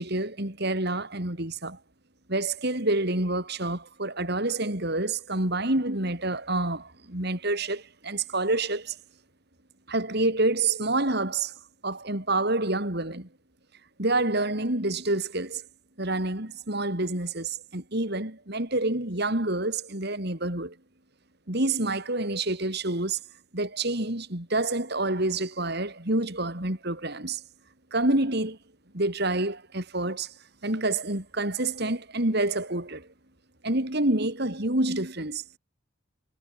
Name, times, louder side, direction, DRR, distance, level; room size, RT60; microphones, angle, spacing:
voice 1, 0.0-1.8 2.3-9.0 9.9-11.5 11.8-13.3 14.0-15.6 16.0-20.8 21.5-23.2 23.5-27.4 27.9-28.6 28.9-30.3 30.6-33.1 33.6-35.6, right 2 dB, 50° right, 3.7 m, -28 dB
head